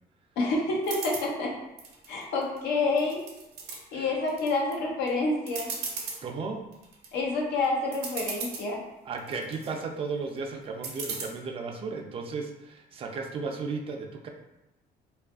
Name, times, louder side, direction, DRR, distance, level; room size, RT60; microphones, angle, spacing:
voice 1, 0.4-1.5 2.1-3.2 3.7-5.7 7.1-8.8, left 3 dB, 80° left, -1 dB, 0.6 m, -28 dB
sound 1, 0.8-1.3 1.8-2.6 3.0-3.8 4.3-4.7 5.1-5.2 5.5-6.2 6.7-7.1 7.6-7.7 7.9-8.7 9.2-9.7 10.8-11.2, right 4 dB, 70° right, 0.6 m, -36 dB
voice 2, 6.2-6.7 9.1-14.3, right 4 dB, 35° right, 2 dB, 0.3 m, -35 dB
2.6 x 2.4 x 2.3 m, 0.93 s
cardioid pair, 110°, 17 cm